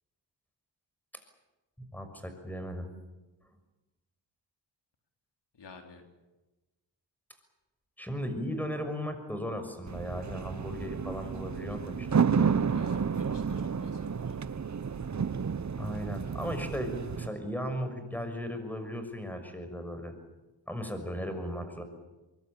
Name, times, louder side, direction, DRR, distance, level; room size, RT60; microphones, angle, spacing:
voice 1, 1.8-2.9 8.0-12.5 15.8-20.1 20.7-21.8, equal, 5° left, 7 dB, 6.2 m, -36 dB
voice 2, 5.5-6.0 12.8-14.4, left 4 dB, 70° left, 4 dB, 3.6 m, -52 dB
sound 1, 9.9-17.3, right 6 dB, 40° right, 1.0 m, -31 dB
24.0 x 22.0 x 8.8 m, 1.1 s
cardioid pair, 60°, 44 cm